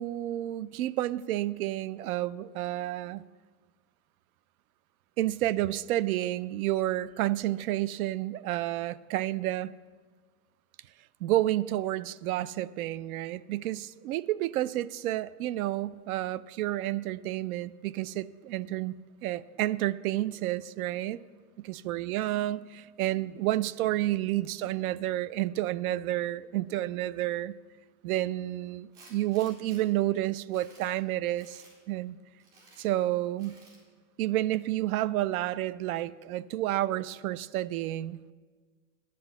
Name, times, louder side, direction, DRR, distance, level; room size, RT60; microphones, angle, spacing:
voice 1, 0.0-3.2 5.2-9.7 11.2-18.9 19.2-21.2 21.6-27.6 28.0-32.1 32.8-33.6 34.2-38.3, right 14 dB, 85° right, 19 dB, 0.5 m, -30 dB
Tools, 28.9-29.8 30.3-30.9 31.4-31.7 32.4-32.9 33.4-33.8, right 3 dB, 70° right, 4.3 m, -55 dB
10.5 x 7.7 x 6.9 m, 1.5 s
supercardioid pair, 175°, 42 cm